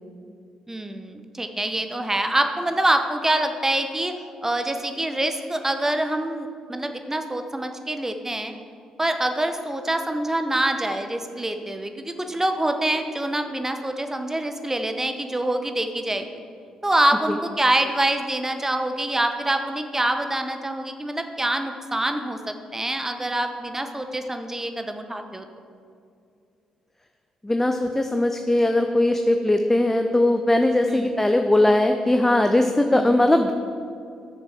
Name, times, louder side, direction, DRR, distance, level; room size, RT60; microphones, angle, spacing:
voice 1, 0.7-4.1 4.4-8.5 9.0-16.3 16.8-25.5 30.9-31.2 32.9-33.3, right 1 dB, 15° right, 6 dB, 1.0 m, -25 dB
voice 2, 27.4-33.5, left 1 dB, 10° left, 5 dB, 0.6 m, -20 dB
13.0 x 6.8 x 4.5 m, 2.4 s
figure-of-eight pair, 40°, 3 cm